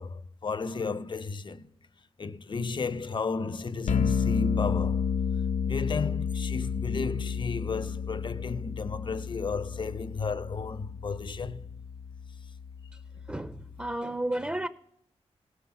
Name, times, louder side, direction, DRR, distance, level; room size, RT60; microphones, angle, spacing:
voice 1, 0.0-1.7 2.2-5.1 5.6-11.7, left 4 dB, 45° left, 0.7 m, -33 dB
sound 1, 3.9-13.9, left 6 dB, 85° left, 0.7 m, -32 dB
voice 2, 13.3-14.7, right 1 dB, 10° right, 0.5 m, -32 dB
18.0 x 7.9 x 7.1 m
wide cardioid pair, 125°, 11 cm